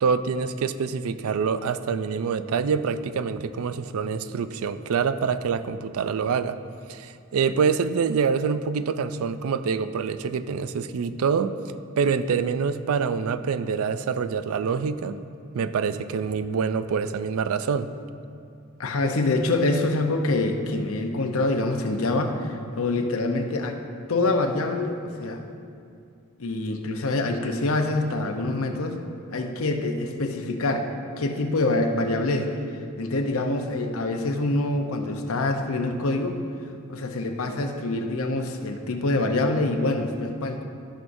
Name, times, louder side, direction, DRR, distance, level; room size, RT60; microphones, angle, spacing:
voice 1, 0.0-6.6 6.9-11.5 12.0-15.2 15.5-17.9 19.0-19.1, right 6 dB, 85° right, 12 dB, 0.4 m, -26 dB
voice 2, 18.8-23.8 24.1-25.4 26.4-29.0 29.3-30.9 31.2-32.5 33.0-36.4 36.9-40.6, left 2 dB, 80° left, 4 dB, 0.7 m, -25 dB
14.0 x 6.1 x 2.6 m, 2.4 s
head